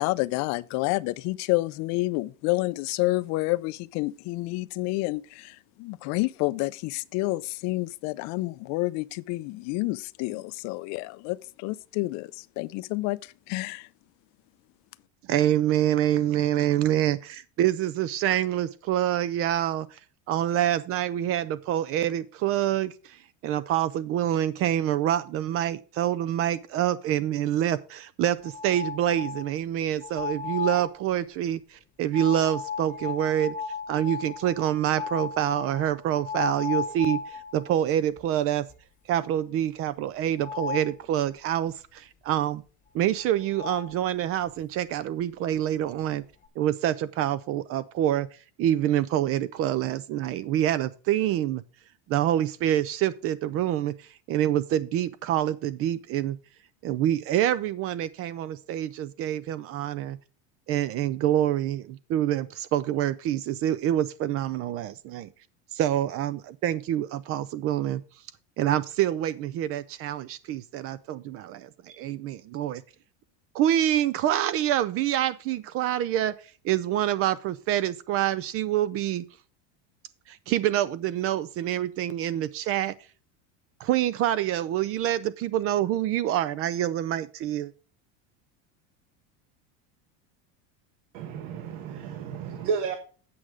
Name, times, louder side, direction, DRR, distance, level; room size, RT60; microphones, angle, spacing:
voice 1, 0.0-13.9, left 21 dB, 50° left, 0.5 m, -29 dB
voice 2, 15.3-20.0 20.3-33.5 33.9-38.7 39.1-42.6 42.9-46.2 46.6-48.3 48.6-51.6 52.1-56.4 56.8-60.2 60.7-65.3 65.7-68.0 68.6-72.8 73.5-76.4 76.6-79.2 80.3-82.9 83.8-87.7, right 11 dB, 40° right, 0.4 m, -26 dB
sound 1, 28.4-29.5 30.0-30.9 32.1-37.7 38.2-38.3 38.7-38.8 40.4-40.9 43.2-43.3 43.5-43.9, left 6 dB, 20° left, 1.1 m, -34 dB
voice 3, 91.1-93.0, right 6 dB, 65° right, 1.3 m, -32 dB
8.6 x 6.2 x 4.9 m
supercardioid pair, 135°, 36 cm